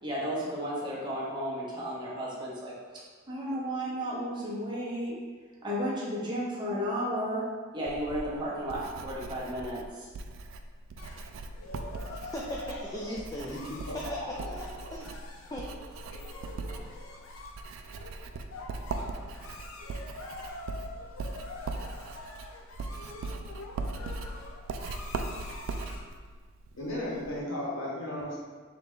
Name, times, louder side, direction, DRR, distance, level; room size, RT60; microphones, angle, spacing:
voice 1, 0.0-2.7 3.3-5.1 5.6-7.5 7.7-10.1, equal, 20° right, -7 dB, 1.0 m, -33 dB
Writing, 7.9-27.4, right 3 dB, 70° right, 0.3 m, -40 dB
sound 1, 11.0-26.2, left 2 dB, 90° left, 0.5 m, -45 dB
voice 2, 12.1-13.6 13.9-14.0 14.4-15.1 15.5-15.7, equal, 20° left, -3 dB, 0.3 m, -38 dB
voice 3, 26.8-28.4, left 1 dB, 70° left, -5 dB, 1.2 m, -35 dB
3.9 x 3.4 x 3.6 m, 1.5 s
head